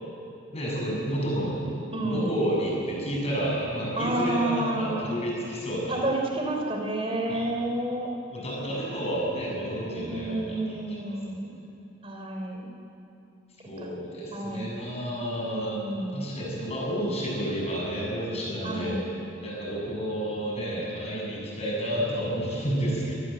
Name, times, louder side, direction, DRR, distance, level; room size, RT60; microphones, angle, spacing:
voice 1, 0.5-1.6 2.0-6.0 7.3-7.5 8.3-10.6 11.1-11.2 13.7-15.8 16.1-18.9 19.4-23.1, equal, 30° left, -3 dB, 7.4 m, -30 dB
voice 2, 1.9-2.4 4.0-5.1 5.9-8.1 9.9-11.5 12.0-12.7 13.8-13.9 14.3-14.7 15.4-16.2 18.6-19.0, right 1 dB, 25° right, 1 dB, 3.4 m, -30 dB
25.0 x 20.0 x 7.8 m, 2.7 s
head